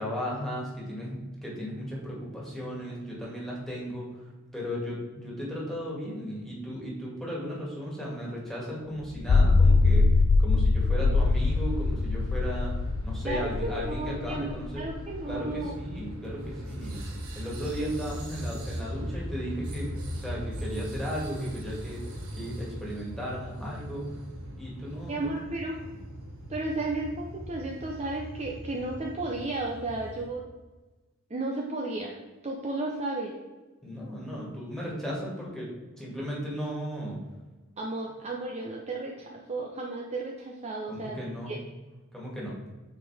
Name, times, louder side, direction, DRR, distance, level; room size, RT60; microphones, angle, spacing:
voice 1, 0.0-12.7 13.0-14.9 15.3-17.0 17.4-19.9 20.2-22.0 22.4-24.2 24.6-25.3 33.8-37.2 40.9-41.6 42.1-42.6, equal, ahead, -5 dB, 2.1 m, -35 dB
sound 1, 9.1-15.6, left 3 dB, 50° left, 0.4 m, -23 dB
sound 2, 11.1-30.3, equal, 85° right, 1.5 m, -39 dB
voice 2, 13.2-15.7 25.1-25.8 26.5-30.4 31.3-32.2 32.4-33.3 37.8-41.2 41.5-41.6, right 2 dB, 30° right, -1 dB, 0.6 m, -33 dB
7.2 x 4.7 x 3.4 m, 1.2 s
head